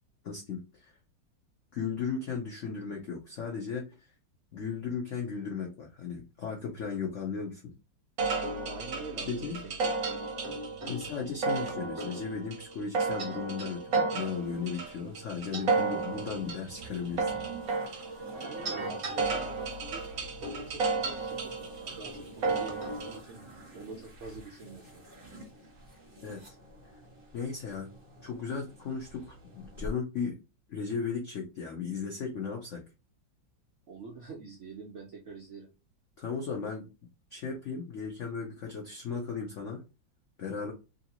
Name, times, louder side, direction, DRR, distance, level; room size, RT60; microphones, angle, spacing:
voice 1, 0.2-0.9 1.7-3.9 4.5-7.6 9.3-9.6 10.9-17.3 26.2-26.5 27.3-27.9 28.2-30.4 30.7-32.8 36.2-36.9 37.3-39.8 40.4-40.7, left 5 dB, 80° left, 0 dB, 0.6 m, -36 dB
sound 1, 8.2-23.2, right 4 dB, 55° right, 1.1 m, -33 dB
voice 2, 8.6-9.9 10.8-11.0 18.3-25.0 33.9-35.7, right 4 dB, 85° right, 1 dB, 0.6 m, -46 dB
sound 2, 14.2-29.9, right 1 dB, 30° right, 1.3 m, -50 dB
3.1 x 2.6 x 2.8 m, 0.29 s
omnidirectional pair, 2.1 m